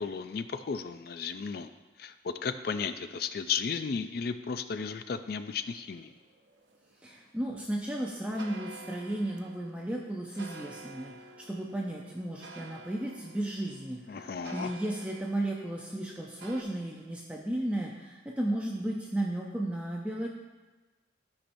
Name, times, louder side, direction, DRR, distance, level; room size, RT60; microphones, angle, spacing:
voice 1, 0.0-1.7 2.0-6.1 14.1-14.7, left 6 dB, 55° left, 10 dB, 0.3 m, -34 dB
sound 1, 5.7-16.6, right 3 dB, 70° right, 0.8 m, -50 dB
voice 2, 7.0-20.3, right 1 dB, 5° right, -2 dB, 0.5 m, -34 dB
13.0 x 5.8 x 2.6 m, 1.2 s
head